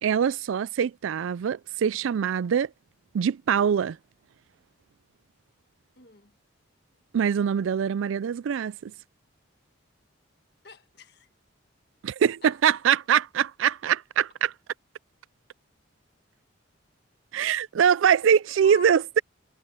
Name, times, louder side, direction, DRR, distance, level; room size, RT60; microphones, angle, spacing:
voice 1, 0.0-2.7 3.1-4.0 7.1-8.9 12.0-14.5 17.3-19.2, right 8 dB, 75° right, 0.3 m, -23 dB
voice 2, 6.0-6.3 10.6-11.3 12.2-12.8 18.5-19.1, left 3 dB, 55° left, 1.6 m, -46 dB
head